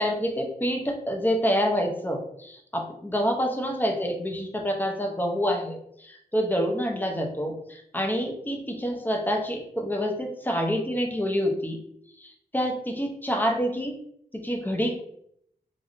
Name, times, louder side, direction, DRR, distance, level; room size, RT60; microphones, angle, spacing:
voice 1, 0.0-11.8 12.2-13.9 14.4-14.9, equal, 10° left, 2 dB, 0.5 m, -27 dB
3.3 x 2.4 x 2.5 m, 0.72 s
wide cardioid pair, 95°, 16 cm